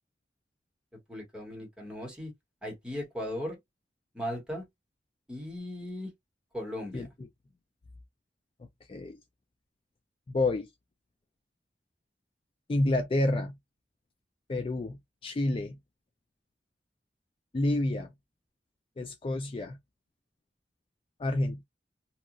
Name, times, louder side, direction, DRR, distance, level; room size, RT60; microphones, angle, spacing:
voice 1, 1.1-2.3 2.6-3.6 4.1-4.6 5.3-6.1 6.5-7.1, left 1 dB, 5° right, 1.2 m, -37 dB
voice 2, 10.3-10.7 12.7-13.5 14.5-15.8 17.5-18.1 19.0-19.8 21.2-21.6, left 2 dB, 30° left, 0.3 m, -29 dB
2.8 x 2.4 x 2.4 m
head